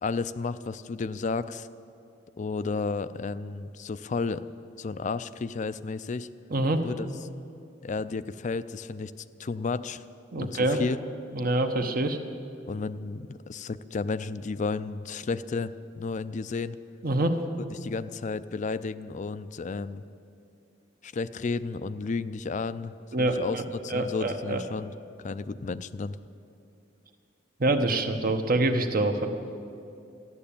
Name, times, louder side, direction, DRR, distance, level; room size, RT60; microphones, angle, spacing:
voice 1, 0.0-1.7 2.4-4.4 4.8-6.3 6.8-7.1 7.8-9.1 9.4-10.1 10.4-11.0 12.7-16.8 17.7-20.0 21.0-24.9 25.2-26.2, left 4 dB, 40° left, 14 dB, 0.4 m, -32 dB
voice 2, 6.5-6.8 10.3-10.8 11.3-12.2 17.0-17.4 23.1-24.6 27.6-29.3, right 2 dB, 50° right, 6 dB, 1.1 m, -26 dB
14.0 x 11.5 x 8.6 m, 2.6 s
head